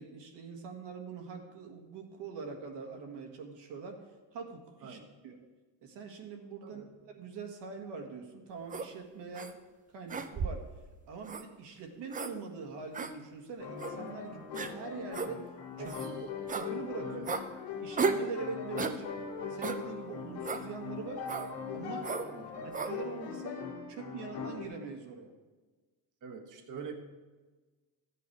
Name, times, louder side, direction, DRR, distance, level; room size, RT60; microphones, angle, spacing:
voice 1, 0.0-4.0 4.3-5.0 5.2-5.4 5.8-9.6 9.9-10.6 11.1-15.4 15.8-15.9 16.2-17.2 17.8-19.1 19.5-21.3 21.7-22.1 22.6-23.6 23.9-25.3, right 5 dB, 70° right, 4 dB, 1.7 m, -43 dB
voice 2, 6.6-7.0 15.8-16.3 17.0-17.3 22.3-22.8 26.2-26.9, right 5 dB, 45° right, 4 dB, 1.3 m, -45 dB
sound 1, 8.7-8.9 9.3-9.5 10.1-10.7 11.3-11.4 12.1-12.3 12.9-13.1 13.8-13.9 14.5-14.7 15.1-15.3 15.8-16.1 16.5-16.7 17.3-17.4 18.0-18.3 18.8-19.0 19.6-19.8 20.4-20.6 21.3-21.5 22.0-22.3 22.7-22.9, right 4 dB, 20° right, 0.5 m, -34 dB
sound 2, 13.6-24.6, left 6 dB, 65° left, 1.9 m, -41 dB
13.0 x 8.4 x 4.6 m, 1.3 s
cardioid pair, 125°, 44 cm